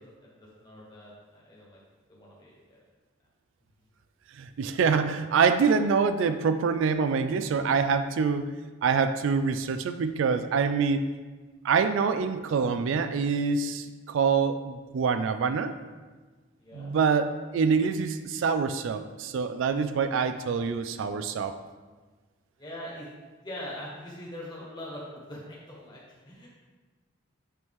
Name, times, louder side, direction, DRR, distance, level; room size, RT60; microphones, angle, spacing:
voice 1, 0.0-1.8 2.1-2.8 16.6-16.9 22.6-23.1 23.4-26.5, left 1 dB, 20° left, -5 dB, 1.3 m, -42 dB
voice 2, 4.4-8.5 8.8-11.0 11.6-15.7 16.7-21.5, right 5 dB, 70° right, 10 dB, 0.3 m, -25 dB
8.7 x 3.1 x 3.6 m, 1.3 s
head